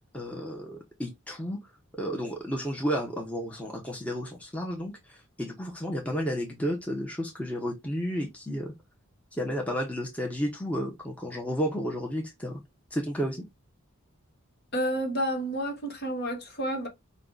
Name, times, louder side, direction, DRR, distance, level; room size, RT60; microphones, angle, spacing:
voice 1, 0.0-1.6 1.9-8.7 9.3-12.6 12.9-13.4, equal, 5° left, 0.9 m, -32 dB
voice 2, 14.7-16.9, right 1 dB, 50° left, 1.5 m, -30 dB
5.6 x 2.4 x 3.8 m
head